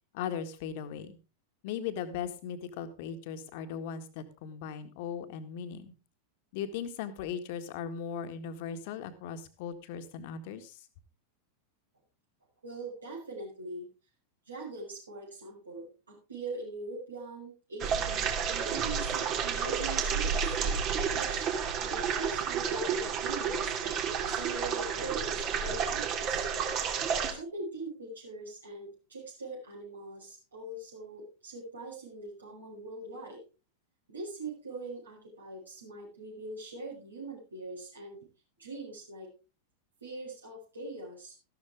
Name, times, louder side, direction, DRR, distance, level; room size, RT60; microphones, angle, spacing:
voice 1, 0.1-1.2 1.6-5.9 6.5-10.9, left 7 dB, 50° left, 9 dB, 1.8 m, -38 dB
voice 2, 12.6-13.9 14.4-20.6 21.1-24.0 24.2-26.5 27.3-33.4 34.1-38.2 38.6-39.3 40.0-41.3, right 2 dB, 75° right, -6 dB, 6.1 m, -42 dB
sound 1, 17.8-27.3, right 7 dB, 35° right, 2.6 m, -31 dB
14.0 x 12.5 x 3.7 m, 0.31 s
figure-of-eight pair, 90°, 0 cm